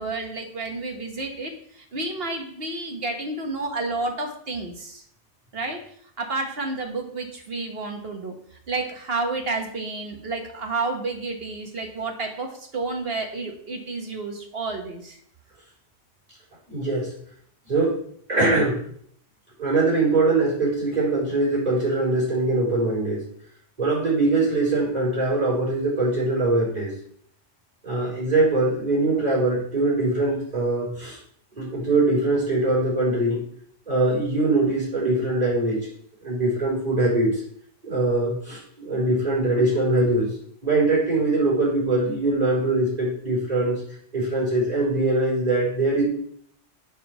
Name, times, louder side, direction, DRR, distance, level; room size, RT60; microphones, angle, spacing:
voice 1, 0.0-5.0 5.5-5.8 6.2-8.3 8.7-15.2, right 3 dB, 50° right, 3 dB, 1.5 m, -30 dB
voice 2, 16.7-17.1 17.7-18.0 18.3-18.8 19.6-23.3 23.8-26.9 27.8-31.2 31.6-33.4 33.9-35.9 36.2-37.4 37.8-40.3 40.6-43.8 44.1-46.0, right 2 dB, 35° right, -4 dB, 4.3 m, -22 dB
7.3 x 5.6 x 6.1 m, 0.64 s
omnidirectional pair, 1.3 m